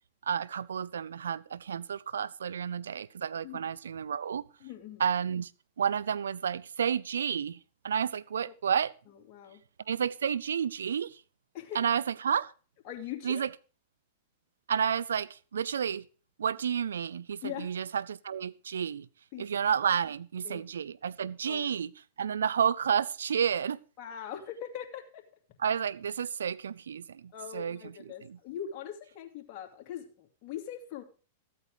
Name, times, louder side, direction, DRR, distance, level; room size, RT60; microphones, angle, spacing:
voice 1, 0.3-4.4 5.0-5.5 5.8-7.6 7.8-8.9 9.9-11.2 11.7-12.5 13.2-13.5 14.7-16.0 16.4-19.1 19.4-21.9 22.2-23.8 25.6-28.4, right 8 dB, 90° right, 0.5 m, -31 dB
voice 2, 4.6-5.0 9.3-9.6 11.5-11.8 12.8-13.4 17.4-17.7 19.3-19.5 20.4-20.6 21.4-21.7 24.0-25.2 27.3-31.0, left 10 dB, 45° left, 2.5 m, -41 dB
13.5 x 8.6 x 4.9 m
hypercardioid pair, 120°, 0 cm